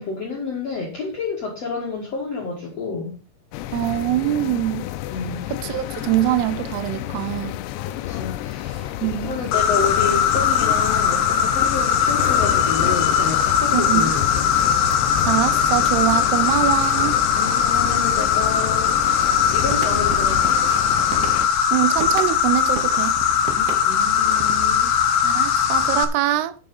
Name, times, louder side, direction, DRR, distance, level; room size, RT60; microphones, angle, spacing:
voice 1, 0.0-3.1 5.1-5.4 7.8-8.9 9.2-14.4 17.4-20.6 23.5-24.9, left 4 dB, 50° left, 2.4 m, -29 dB
sound 1, 3.5-21.5, left 13 dB, 85° left, 2.9 m, -30 dB
voice 2, 3.7-4.9 5.5-7.6 9.0-9.4 13.7-14.1 14.8-14.9 15.3-17.2 21.7-23.2 25.2-26.6, right 14 dB, 80° right, 2.6 m, -23 dB
Insect, 9.5-26.1, left 7 dB, 65° left, 2.4 m, -20 dB
sound 2, 19.6-22.4 22.8-24.7, right 6 dB, 65° right, 2.1 m, -34 dB
9.4 x 7.5 x 5.4 m
omnidirectional pair, 4.8 m